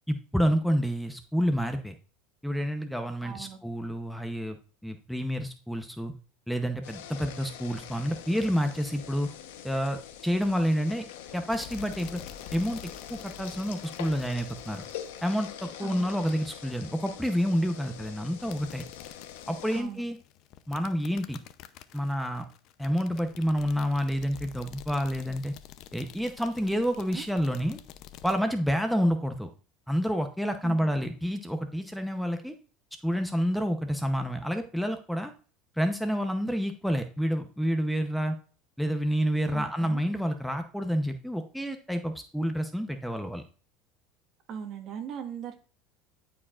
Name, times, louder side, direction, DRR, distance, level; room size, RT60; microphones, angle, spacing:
voice 1, 0.1-2.0 2.4-4.6 4.8-6.1 6.5-9.3 9.6-11.1 11.3-12.2 12.5-14.8 15.2-18.8 19.5-20.2 20.7-21.4 21.9-22.5 22.8-25.5 25.9-27.8 28.2-29.5 29.9-32.5 33.0-35.3 35.8-38.3 38.8-43.4, equal, ahead, 6 dB, 0.8 m, -29 dB
voice 2, 3.2-3.6 15.8-16.4 19.7-20.0 27.0-27.2 30.6-30.9 39.5-40.0 44.5-45.6, right 7 dB, 50° right, 6 dB, 1.5 m, -40 dB
sound 1, 6.8-19.8, left 10 dB, 85° left, 1.0 m, -44 dB
sound 2, 11.5-15.7 18.4-28.4, left 10 dB, 60° left, 0.6 m, -49 dB
12.5 x 4.8 x 2.5 m, 0.38 s
supercardioid pair, 110°, 0 cm